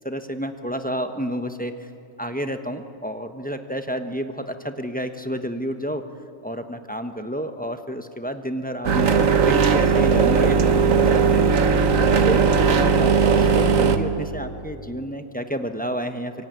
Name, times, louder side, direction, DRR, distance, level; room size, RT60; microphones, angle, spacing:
voice 1, 0.0-1.7 2.2-6.0 6.4-11.4 11.9-16.3, equal, 5° left, 7 dB, 1.0 m, -30 dB
sound 1, 8.8-14.0, right 5 dB, 70° right, 1.6 m, -18 dB
25.5 x 24.0 x 9.5 m, 2.6 s
omnidirectional pair, 1.4 m